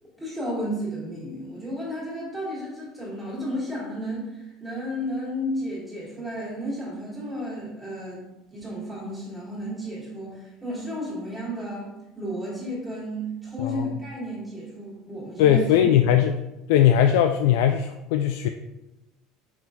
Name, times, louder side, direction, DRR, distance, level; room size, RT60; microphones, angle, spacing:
voice 1, 0.0-8.2 8.5-11.9 12.2-15.6, equal, 10° right, -7 dB, 2.1 m, -33 dB
voice 2, 13.6-13.9 15.4-16.4 16.7-18.5, left 10 dB, 80° left, 6 dB, 0.3 m, -19 dB
5.9 x 4.4 x 3.7 m, 0.96 s
cardioid pair, 170°, 0 cm